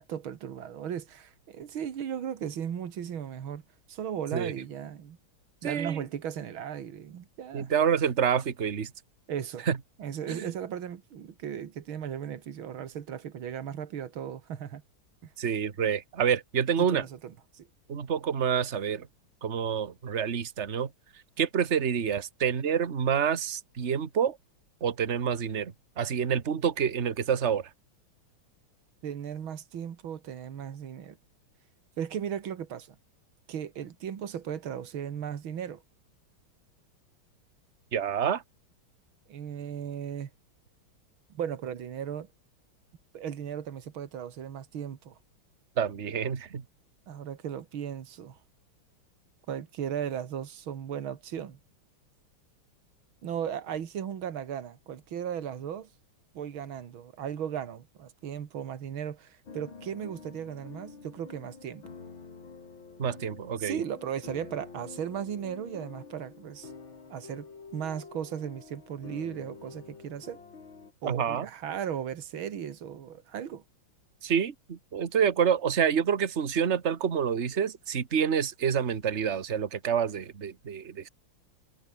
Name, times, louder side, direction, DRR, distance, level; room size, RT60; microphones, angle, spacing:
voice 1, 0.0-3.6 3.9-5.2 5.6-7.7 9.3-9.7 10.0-14.8 15.2-15.3 16.8-17.7 29.0-31.2 32.0-33.0 33.5-35.8 39.3-40.3 41.3-42.3 43.1-45.2 47.1-48.4 49.5-51.6 53.2-55.9 56.3-61.8 63.6-66.7 67.1-67.5 67.7-70.4 71.0-73.6, right 8 dB, 75° right, 2.5 m, -36 dB
voice 2, 5.6-6.0 7.5-8.9 9.7-9.8 10.3-10.5 15.4-17.0 17.9-19.1 19.4-20.9 21.4-24.4 24.8-27.7 37.9-38.4 45.8-46.6 63.0-63.8 71.1-71.5 74.2-81.1, right 7 dB, 35° right, 1.6 m, -28 dB
sound 1, 59.5-70.9, left 5 dB, 65° left, 4.1 m, -47 dB
omnidirectional pair, 2.3 m